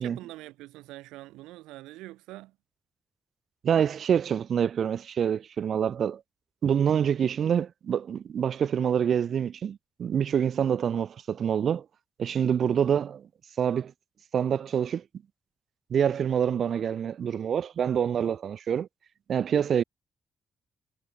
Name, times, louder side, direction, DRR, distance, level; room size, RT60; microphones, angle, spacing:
voice 1, 0.0-2.6, right 18 dB, 85° right, 1.5 m, -44 dB
voice 2, 3.6-6.2 6.6-11.8 12.2-13.2 13.6-13.9 14.3-15.0 15.9-18.9 19.3-19.8, right 8 dB, 65° right, 0.5 m, -26 dB
supercardioid pair, 45°, 0 cm